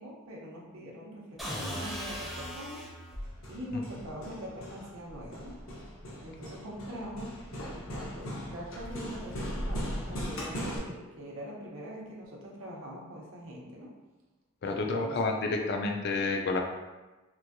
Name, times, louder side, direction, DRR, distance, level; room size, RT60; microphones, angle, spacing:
voice 1, 0.0-2.8 3.5-5.5 6.2-7.3 7.7-13.9 14.6-15.2, equal, 80° right, -3 dB, 0.7 m, -43 dB
sound 1, 1.4-3.3, equal, ahead, 0.6 m, -37 dB
Hammer, 3.2-10.8, equal, 70° left, 0.7 m, -39 dB
voice 2, 14.6-16.6, left 3 dB, 50° left, 2 dB, 0.3 m, -30 dB
3.0 x 2.6 x 2.6 m, 1.1 s
head